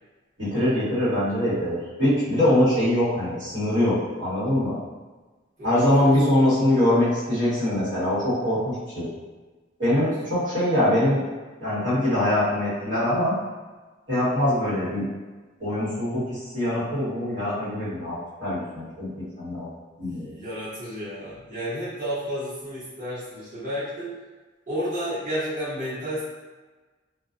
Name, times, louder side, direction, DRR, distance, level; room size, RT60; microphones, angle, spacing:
voice 1, 0.4-4.8 5.6-9.1 9.8-11.2 11.6-13.3 14.1-15.0 15.6-19.7 20.0-20.3, left 1 dB, 70° right, -12 dB, 1.4 m, -23 dB
voice 2, 5.6-6.1 20.0-24.1 24.7-26.2, equal, 45° right, -12 dB, 1.1 m, -32 dB
2.4 x 2.2 x 2.5 m, 1.3 s
head